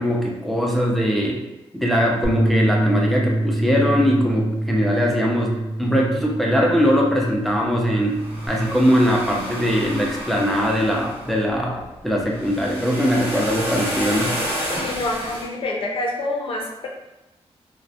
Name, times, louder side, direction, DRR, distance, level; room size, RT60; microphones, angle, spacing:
voice 1, 0.0-1.4 1.7-5.5 5.8-8.2 8.5-14.3, equal, ahead, -2 dB, 0.4 m, -21 dB
Bass guitar, 2.2-8.5, right 1 dB, 20° left, 0.7 m, -25 dB
sound 1, 7.3-15.5, equal, 20° right, 0.8 m, -31 dB
voice 2, 14.7-16.9, left 2 dB, 60° left, 0 dB, 0.5 m, -27 dB
2.3 x 2.0 x 2.6 m, 0.95 s
wide cardioid pair, 140°, 11 cm